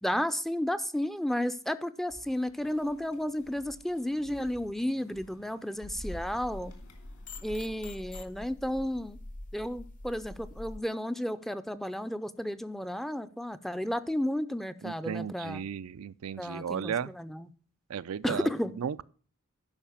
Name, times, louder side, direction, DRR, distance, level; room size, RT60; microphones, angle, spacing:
voice 1, 0.0-6.7 7.4-9.2 9.5-15.6 16.4-17.5 18.2-18.7, left 1 dB, ahead, 0.4 m, -32 dB
sound 1, 2.1-7.8, equal, 65° left, 2.6 m, -51 dB
sound 2, 5.9-10.8, left 2 dB, 35° left, 0.7 m, -45 dB
voice 2, 14.8-17.1 17.9-18.5 18.8-19.0, right 7 dB, 85° right, 0.4 m, -34 dB
11.5 x 5.0 x 7.2 m
head